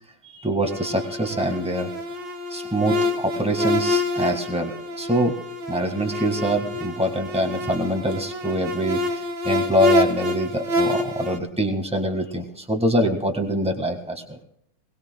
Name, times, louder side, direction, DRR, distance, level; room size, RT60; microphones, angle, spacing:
voice 1, 0.3-1.9 2.5-5.4 5.7-14.4, equal, 5° right, 2 dB, 0.4 m, -24 dB
sound 1, 0.6-11.4, left 2 dB, 40° right, 2.6 m, -27 dB
21.0 x 20.5 x 2.3 m, 0.71 s
omnidirectional pair, 3.6 m